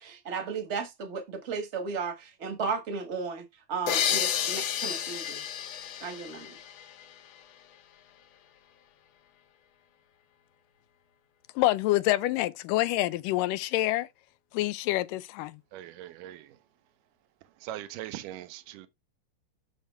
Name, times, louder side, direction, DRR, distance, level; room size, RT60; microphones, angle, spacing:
voice 1, 0.0-5.4 6.0-6.6, right 5 dB, 35° right, 1.2 m, -35 dB
sound 1, 3.9-7.4, left 9 dB, 65° left, 1.8 m, -31 dB
voice 2, 11.6-14.1 14.5-15.6, left 16 dB, 90° left, 2.3 m, -27 dB
voice 3, 15.7-16.6 17.6-18.9, right 13 dB, 80° right, 2.3 m, -41 dB
6.9 x 6.6 x 3.4 m
omnidirectional pair, 3.8 m